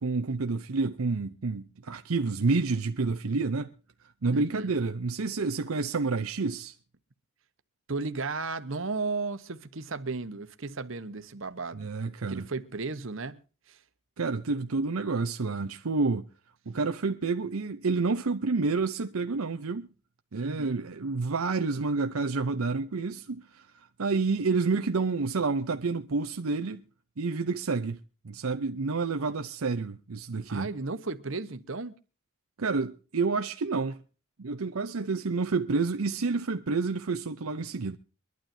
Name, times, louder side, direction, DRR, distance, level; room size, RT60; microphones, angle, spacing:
voice 1, 0.0-3.7 4.2-6.7 11.7-12.4 14.2-16.3 16.7-19.9 20.3-23.7 24.0-26.8 27.2-28.0 28.2-30.7 32.6-34.0 34.4-38.0, right 4 dB, 85° right, 0.7 m, -29 dB
voice 2, 4.3-4.7 7.9-11.9 12.3-13.4 13.7-13.8 20.4-20.8 30.5-32.0, right 3 dB, 65° right, 1.1 m, -34 dB
24.0 x 12.0 x 2.7 m
head